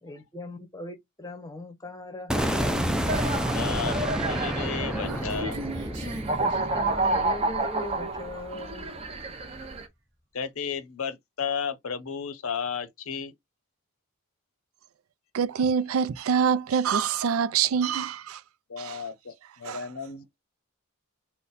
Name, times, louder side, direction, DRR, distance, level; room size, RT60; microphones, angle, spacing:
voice 1, 0.0-2.8 6.4-8.9, left 2 dB, 15° left, 0.8 m, -39 dB
sound 1, 2.3-8.3, equal, 5° right, 0.4 m, -30 dB
sound 2, 3.0-9.8, right 2 dB, 30° right, 0.7 m, -30 dB
voice 2, 3.5-5.6 10.3-13.3 18.7-20.4, left 6 dB, 70° left, 0.7 m, -33 dB
Human voice, 4.7-7.5, equal, 55° right, 1.0 m, -39 dB
voice 3, 15.3-18.4 18.8-19.0 19.6-19.9, right 7 dB, 75° right, 0.4 m, -25 dB
3.9 x 2.2 x 4.0 m
head